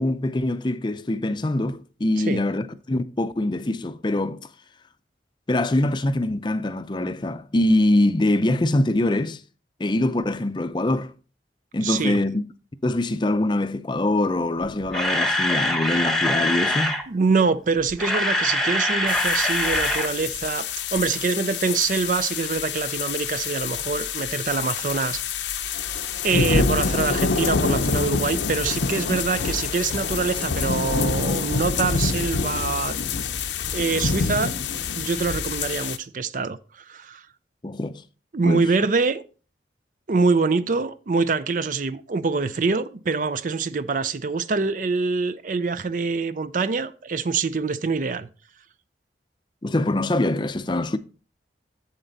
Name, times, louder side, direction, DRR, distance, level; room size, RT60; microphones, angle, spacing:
voice 1, 0.0-4.5 5.5-9.4 9.8-11.1 11.7-12.4 12.8-17.0 37.6-38.0 38.4-38.7 49.6-51.0, left 1 dB, 25° left, 0.5 m, -23 dB
voice 2, 11.8-12.2 17.1-25.8 26.2-33.0 33.7-34.5 35.0-37.2 38.3-39.2 40.1-48.3, right 4 dB, 45° right, 0.5 m, -25 dB
Camera, 14.6-17.0 17.8-20.1 20.3-20.5 21.0-21.1, left 1 dB, 5° left, 1.0 m, -23 dB
sound 1, 19.1-36.0, left 5 dB, 90° left, 0.8 m, -26 dB
8.0 x 7.6 x 4.0 m
head